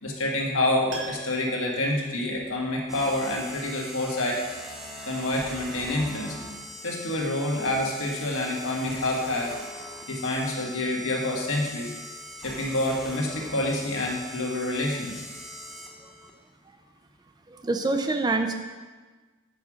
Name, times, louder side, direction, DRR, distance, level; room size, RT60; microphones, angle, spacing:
voice 1, 0.0-4.4 5.1-6.4 6.8-9.5 10.1-11.9 12.4-15.2, left 1 dB, 70° left, -1 dB, 1.5 m, -27 dB
Piano, 0.9-3.0 3.3-3.4, right 2 dB, 55° right, 1.5 m, -41 dB
sound 1, 2.9-16.3, equal, ahead, 0.8 m, -41 dB
voice 2, 17.5-18.6, right 3 dB, 20° right, 6 dB, 0.3 m, -26 dB
7.9 x 4.8 x 6.1 m, 1.4 s
head